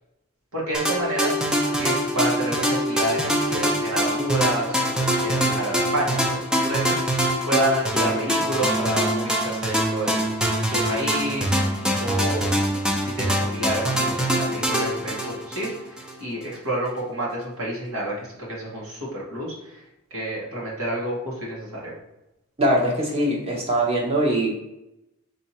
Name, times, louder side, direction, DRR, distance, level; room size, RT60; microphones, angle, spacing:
voice 1, 0.5-10.3 10.7-12.5 13.0-19.8 20.1-21.9, right 1 dB, 80° right, -4 dB, 1.4 m, -29 dB
sound 1, 0.7-16.2, equal, 5° right, 0.4 m, -24 dB
voice 2, 22.6-24.5, right 1 dB, 25° right, -2 dB, 1.0 m, -22 dB
4.3 x 2.7 x 4.2 m, 0.91 s
head